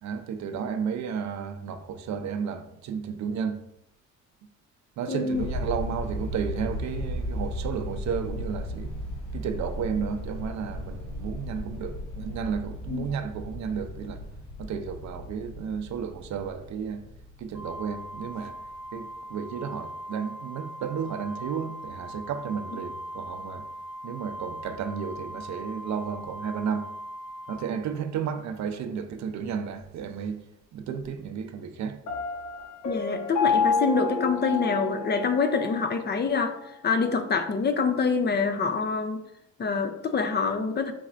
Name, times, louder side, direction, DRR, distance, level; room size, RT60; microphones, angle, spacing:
voice 1, 0.0-3.6 5.0-8.9 9.3-14.2 14.6-17.0 17.4-18.6 18.9-23.6 24.0-26.9 27.5-30.4 30.7-32.0, right 7 dB, 65° right, 0.5 m, -33 dB
voice 2, 5.1-5.4 12.9-13.1 32.8-39.2 39.6-40.9, left 5 dB, 35° left, 0.5 m, -26 dB
sound 1, 5.3-18.6, equal, 85° left, 1.1 m, -36 dB
Organ, 17.5-28.3, equal, 5° right, 0.8 m, -40 dB
Piano, 32.1-35.9, left 4 dB, 70° left, 1.2 m, -28 dB
4.3 x 4.1 x 2.5 m
cardioid pair, 90°, 30 cm